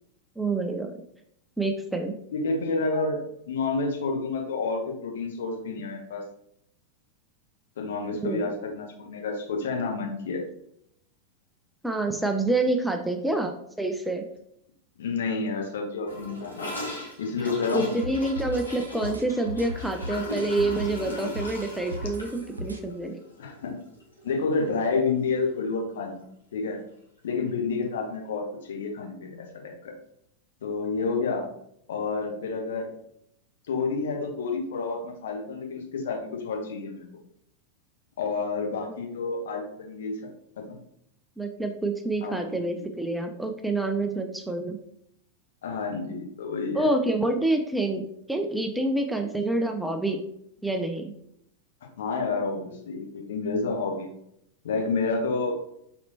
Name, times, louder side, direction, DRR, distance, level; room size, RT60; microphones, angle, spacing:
voice 1, 0.4-0.9 1.6-2.2 8.2-8.5 11.8-14.2 17.7-23.2 38.9-39.0 41.4-44.8 46.7-48.0 48.3-50.3 50.6-51.1, right 2 dB, 5° right, 4 dB, 0.4 m, -27 dB
voice 2, 2.3-3.2 3.5-6.2 7.8-10.4 15.0-16.7 17.2-17.9 23.4-23.8 24.2-26.2 26.5-26.8 27.2-29.9 30.6-31.5 31.9-32.9 33.7-37.1 38.2-40.2 42.2-42.8 45.6-46.9 52.0-54.1 54.6-55.6, left 4 dB, 60° left, 1 dB, 1.0 m, -29 dB
Gurgling / Toilet flush, 16.1-24.3 24.6-24.7 25.0-25.5 25.7-25.8 26.1-26.2 27.2-27.3, left 1 dB, 75° left, 1.3 m, -39 dB
sound 1, 17.7-21.0 21.4-22.8, equal, 80° right, 0.4 m, -37 dB
4.3 x 4.1 x 2.7 m, 0.72 s
figure-of-eight pair, 90°, 0 cm